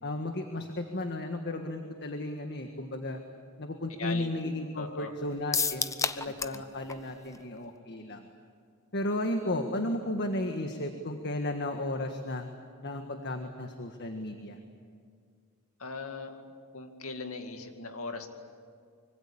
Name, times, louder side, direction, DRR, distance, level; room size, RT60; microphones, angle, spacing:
voice 1, 0.0-3.2 3.6-8.3 8.9-12.5 12.8-14.6, left 1 dB, 55° left, 5 dB, 1.6 m, -34 dB
voice 2, 4.7-5.1 6.5-6.6 15.8-16.4 16.7-18.3, left 3 dB, 75° left, 5 dB, 2.4 m, -39 dB
sound 1, 5.5-6.6 6.9-7.0 7.3-7.4, left 5 dB, 15° left, 0.7 m, -29 dB
25.0 x 24.5 x 8.7 m, 2.1 s
head